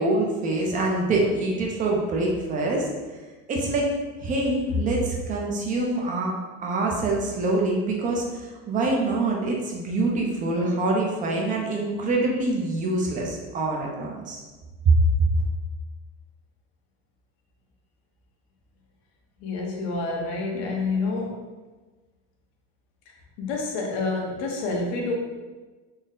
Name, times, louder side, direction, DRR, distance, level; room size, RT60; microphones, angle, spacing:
voice 1, 0.0-2.9 3.5-3.9 4.2-6.3 6.6-14.4 14.8-14.9, right 2 dB, 25° right, -1 dB, 0.4 m, -25 dB
voice 2, 19.4-21.4 23.4-25.1, left 3 dB, 90° left, 0 dB, 0.9 m, -28 dB
3.9 x 2.1 x 3.6 m, 1.3 s
cardioid pair, 170°, 30 cm